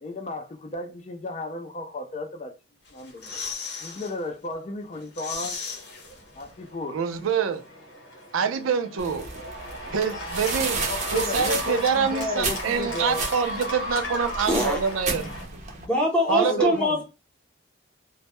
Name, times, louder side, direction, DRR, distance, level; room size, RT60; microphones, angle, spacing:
voice 1, 0.0-2.6 2.9-3.3 3.8-5.6 6.3-7.0 9.9-10.1 10.9-13.3 16.3-17.0, left 2 dB, 35° left, 0.3 m, -34 dB
sound 1, 2.8-4.1 4.5-4.6 4.9-6.7 6.9-7.0, left 5 dB, 55° left, 0.7 m, -36 dB
Cheering / Applause, 5.8-15.5, equal, 80° left, 1.0 m, -36 dB
voice 2, 6.9-7.6 8.3-9.2 9.9-10.8 11.1-15.3 16.3-16.7, right 6 dB, 90° right, 0.4 m, -25 dB
sound 2, 9.0-15.9, right 4 dB, 35° right, 0.5 m, -33 dB
voice 3, 14.5-14.8 15.8-17.0, equal, 5° left, 0.7 m, -23 dB
2.1 x 2.0 x 2.9 m
head